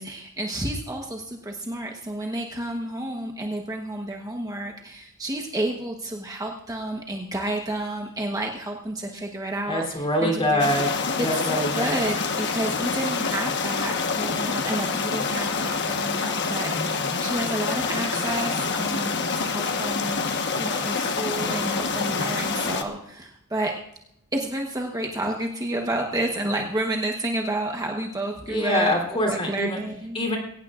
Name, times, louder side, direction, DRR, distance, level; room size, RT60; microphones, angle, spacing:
voice 1, 0.0-10.7 11.2-20.3 20.5-23.7 24.3-29.0 29.3-30.2, right 1 dB, 15° right, 1 dB, 1.1 m, -30 dB
voice 2, 9.7-12.0 28.5-29.8 30.1-30.4, left 1 dB, 25° left, 2 dB, 3.3 m, -25 dB
sound 1, 10.6-22.8, left 4 dB, 55° left, 1.2 m, -27 dB
21.5 x 18.0 x 2.5 m, 0.75 s
head